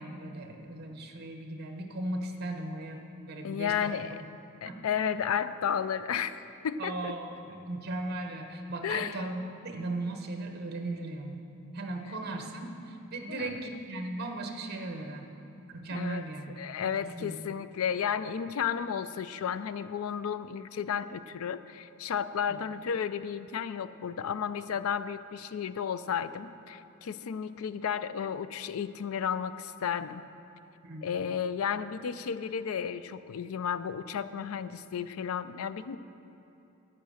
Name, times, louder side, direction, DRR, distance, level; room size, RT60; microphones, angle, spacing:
voice 1, 0.0-3.0 3.3-4.2 4.6-4.8 6.8-11.4 11.7-15.3 15.7-16.6 17.0-17.6 22.5-22.6 30.8-31.1, right 2 dB, 45° right, 4 dB, 0.9 m, -37 dB
voice 2, 3.4-4.2 4.6-7.1 8.8-9.2 13.3-13.5 15.9-16.2 16.6-30.2 31.0-36.0, left 7 dB, 75° left, 14 dB, 0.4 m, -33 dB
10.5 x 7.6 x 6.4 m, 2.9 s
head